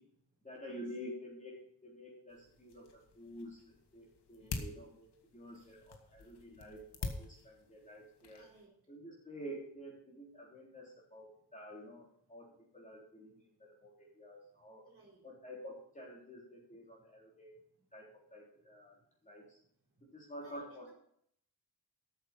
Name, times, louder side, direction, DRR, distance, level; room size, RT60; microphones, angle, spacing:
voice 1, 0.4-5.1 5.3-8.5 8.9-11.3 11.5-12.5 12.7-14.8 15.2-17.5 17.9-19.6 20.0-20.9, equal, 20° left, -3 dB, 3.8 m, -50 dB
sound 1, 2.3-8.7, left 4 dB, 75° left, 2.0 m, -47 dB
voice 2, 4.4-4.8 7.4-7.5 8.3-8.9 11.4-11.5 14.8-15.2 17.8-17.9 19.9-20.1 20.4-20.9, right 1 dB, 35° right, -2 dB, 4.3 m, -61 dB
14.0 x 8.5 x 4.5 m, 0.67 s
wide cardioid pair, 165°, 41 cm